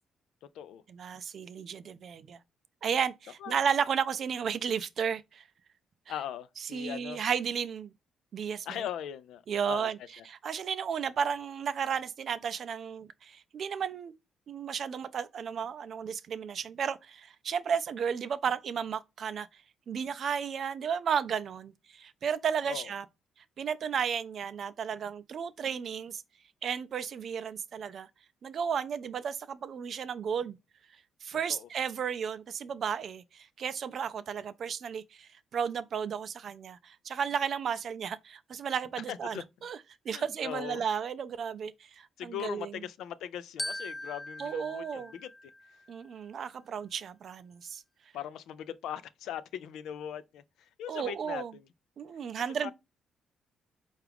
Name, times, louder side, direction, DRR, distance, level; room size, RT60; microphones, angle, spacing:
voice 1, 0.9-2.4 2.8-5.4 6.7-7.9 8.3-8.8 9.5-10.0 10.3-14.1 14.5-19.5 19.9-23.1 23.6-26.2 26.6-28.1 28.4-30.6 31.2-39.8 40.0-42.7 44.4-45.1 45.9-47.8 50.9-51.5 52.0-52.7, right 7 dB, 60° right, 0.4 m, -33 dB
voice 2, 6.1-7.2 8.7-9.9 10.2-10.3 22.7-22.9 31.5-31.7 39.1-39.4 40.1-40.8 42.2-45.3 48.1-51.7 52.6-52.7, left 10 dB, 80° left, 0.4 m, -40 dB
Glockenspiel, 43.6-46.1, left 1 dB, 10° left, 0.3 m, -41 dB
4.6 x 2.4 x 3.4 m
cardioid pair, 90°, 0 cm